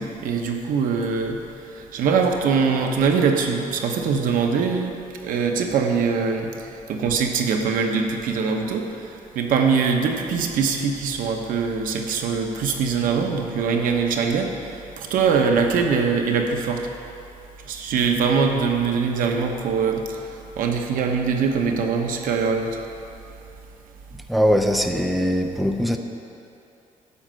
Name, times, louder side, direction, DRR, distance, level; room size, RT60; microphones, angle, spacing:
voice 1, 0.0-1.4 1.9-4.9 5.2-6.5 6.9-8.9 9.3-14.5 15.0-16.9 17.7-20.0 20.6-22.8, right 5 dB, 90° right, 3 dB, 1.1 m, -22 dB
voice 2, 24.3-26.0, equal, ahead, 5 dB, 0.5 m, -21 dB
11.5 x 5.6 x 7.6 m, 2.7 s
cardioid pair, 150°, 14 cm